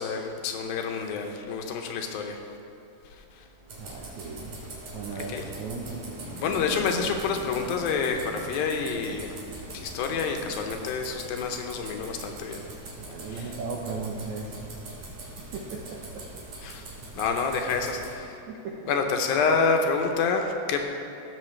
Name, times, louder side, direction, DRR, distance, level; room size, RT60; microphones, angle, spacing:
voice 1, 0.0-2.4 3.3-3.5 5.2-5.5 6.4-9.4 9.7-12.6 13.3-13.5 16.6-16.9 17.2-18.4 18.9-20.9, left 5 dB, 80° left, 4 dB, 2.6 m, -28 dB
sound 1, 3.2-16.3, equal, 30° right, 2.8 m, -46 dB
sound 2, 3.7-18.1, right 2 dB, 55° right, 2.7 m, -42 dB
voice 2, 3.8-4.6 4.9-6.0 13.0-14.9 15.5-16.2 18.5-18.9, right 4 dB, 80° right, -2 dB, 1.6 m, -37 dB
16.5 x 6.6 x 3.2 m, 2.7 s
omnidirectional pair, 4.2 m